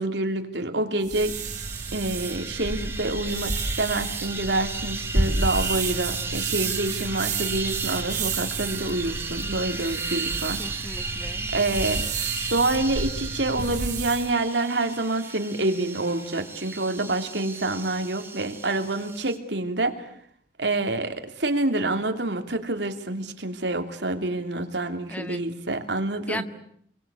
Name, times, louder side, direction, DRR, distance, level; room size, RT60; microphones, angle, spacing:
voice 1, 0.0-1.4 1.9-10.6 11.5-20.1 20.6-26.4, right 2 dB, 70° right, 5 dB, 3.0 m, -27 dB
sound 1, 1.0-14.3, right 3 dB, 45° right, 3.5 m, -31 dB
sound 2, 1.1-19.4, right 4 dB, 15° right, 2.4 m, -35 dB
voice 2, 10.6-11.5 25.1-25.4 26.3-26.4, left 1 dB, 10° left, 10 dB, 1.1 m, -36 dB
29.0 x 23.0 x 8.4 m, 0.67 s
head